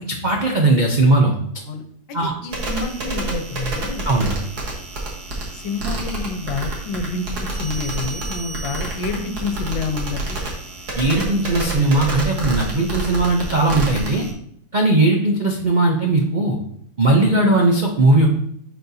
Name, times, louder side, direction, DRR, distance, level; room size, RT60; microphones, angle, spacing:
voice 1, 0.0-1.3 2.1-2.3 4.1-4.3 11.0-14.2 14.7-16.6 17.0-18.3, right 2 dB, 80° right, 0 dB, 0.4 m, -18 dB
voice 2, 1.6-4.1 5.5-10.4, left 3 dB, 85° left, 6 dB, 1.6 m, -28 dB
sound 1, 2.5-14.3, right 2 dB, 60° right, 1.9 m, -28 dB
10.5 x 4.3 x 2.7 m, 0.67 s
omnidirectional pair, 2.0 m